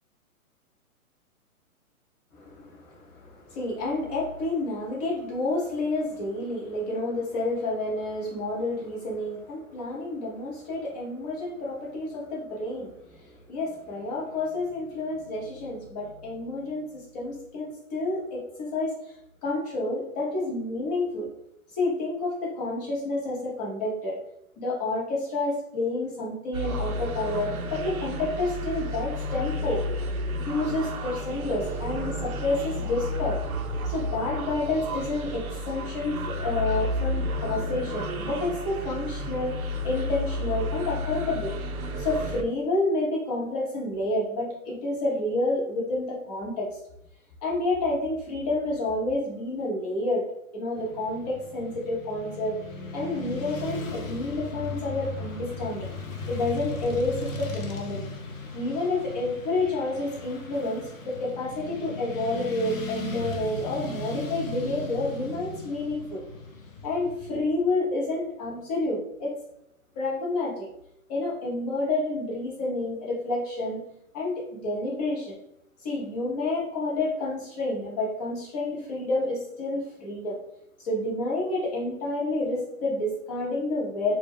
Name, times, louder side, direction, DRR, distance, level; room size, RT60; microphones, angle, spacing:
voice 1, 2.3-18.9 19.4-21.3 21.7-24.2 24.6-29.8 30.5-33.4 33.8-41.5 42.0-46.8 47.4-50.2 50.5-52.5 52.9-55.9 56.3-58.1 58.5-66.2 66.8-69.4 69.9-70.7 71.1-73.8 74.1-75.3 75.8-80.4 80.8-84.1, left 2 dB, 25° left, -4 dB, 0.7 m, -29 dB
sound 1, 26.5-42.4, left 1 dB, 70° right, 0.5 m, -31 dB
Motorcycle / Traffic noise roadway noise, 50.8-67.4, left 3 dB, 65° left, 0.7 m, -37 dB
2.2 x 2.1 x 3.3 m, 0.77 s
hypercardioid pair, 135°, 44 cm